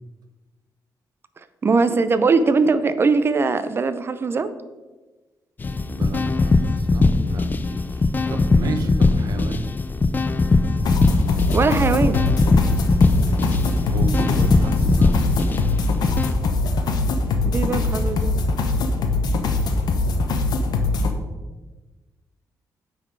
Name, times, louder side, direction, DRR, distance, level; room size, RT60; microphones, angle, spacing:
voice 1, 1.6-4.5 11.5-12.2 17.4-18.3, right 4 dB, 35° right, 12 dB, 0.5 m, -20 dB
sound 1, 5.6-16.3, left 3 dB, 25° left, 0.3 m, -20 dB
voice 2, 5.9-9.7 13.9-15.5, right 4 dB, 65° right, 6 dB, 0.9 m, -32 dB
sound 2, 10.8-21.1, left 3 dB, 75° left, 0.8 m, -22 dB
8.9 x 4.0 x 4.6 m, 1.2 s
cardioid pair, 100°, 7 cm